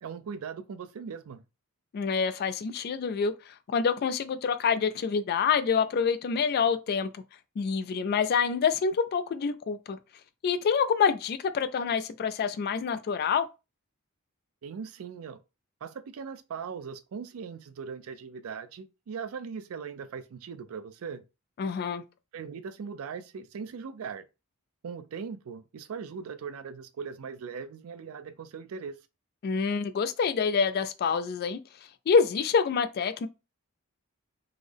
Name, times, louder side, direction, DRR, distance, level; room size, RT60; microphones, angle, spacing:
voice 1, 0.0-1.4 14.6-15.4 15.8-21.2 22.3-24.3 24.8-29.0, right 6 dB, 75° right, 0.4 m, -39 dB
voice 2, 1.9-3.3 3.7-7.1 7.6-10.0 10.4-13.5 21.6-22.0 29.4-31.6 32.1-33.3, left 6 dB, 45° left, 0.3 m, -26 dB
3.6 x 2.0 x 3.3 m
head